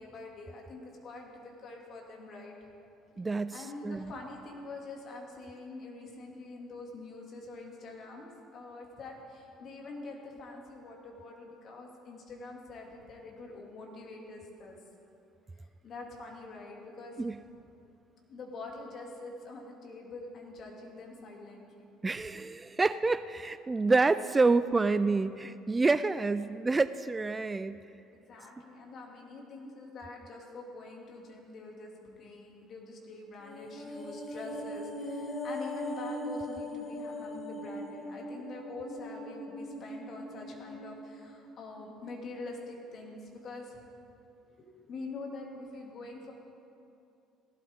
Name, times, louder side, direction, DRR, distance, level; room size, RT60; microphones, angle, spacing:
voice 1, 0.0-2.7 3.1-3.2 3.5-14.8 15.8-17.3 18.3-21.9 22.3-22.5 28.1-43.8 44.4-46.3, left 2 dB, 50° left, 0 dB, 2.4 m, -45 dB
voice 2, 3.2-4.1 17.2-17.4 22.0-27.8, right 3 dB, 20° right, 14 dB, 0.3 m, -28 dB
sound 1, 33.4-41.9 42.2-42.3, left 1 dB, 35° left, 2.0 m, -40 dB
17.0 x 12.5 x 3.6 m, 2.6 s
hypercardioid pair, 60°, 0 cm